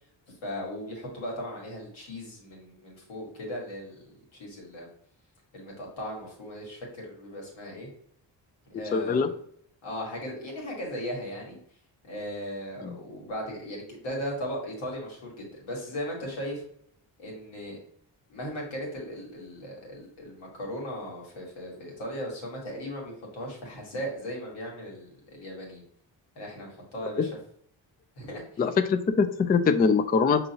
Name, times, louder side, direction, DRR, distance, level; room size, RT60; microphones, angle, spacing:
voice 1, 0.4-4.9 5.5-7.9 8.7-9.3 9.8-11.6 12.1-16.6 17.2-17.8 18.3-25.8 26.3-27.3 28.2-28.6, equal, 85° left, -2 dB, 1.6 m, -37 dB
voice 2, 8.9-9.3 12.8-12.9 28.6-30.5, left 5 dB, 20° left, 8 dB, 0.3 m, -23 dB
5.4 x 2.6 x 2.7 m, 0.63 s
supercardioid pair, 50°, 46 cm